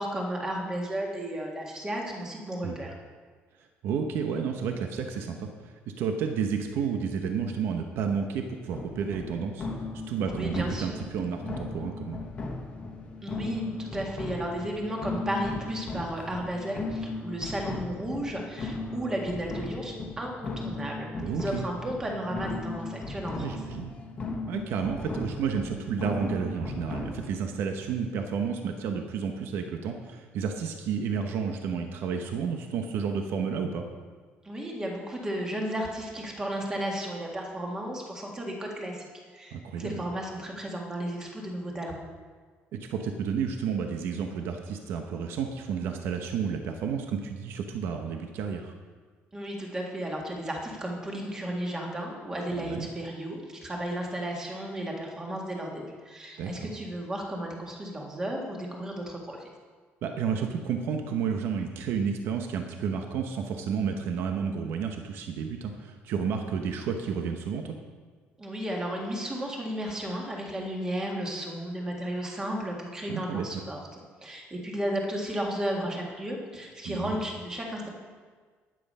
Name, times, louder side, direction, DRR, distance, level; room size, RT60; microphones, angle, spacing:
voice 1, 0.0-2.9 10.3-11.0 13.2-23.6 34.4-39.1 39.3-42.0 49.3-59.5 68.4-77.9, right 1 dB, 15° right, 0 dB, 1.8 m, -34 dB
voice 2, 3.8-9.7 10.1-12.2 21.2-21.6 23.4-23.9 24.5-33.8 39.5-40.0 42.7-48.7 52.5-52.9 56.4-56.5 60.0-67.7 73.1-73.6 76.8-77.2, right 6 dB, 60° right, 4 dB, 1.0 m, -31 dB
sound 1, 8.7-27.3, left 3 dB, 25° left, 1.3 m, -37 dB
11.0 x 10.5 x 5.5 m, 1.6 s
cardioid pair, 180°, 4 cm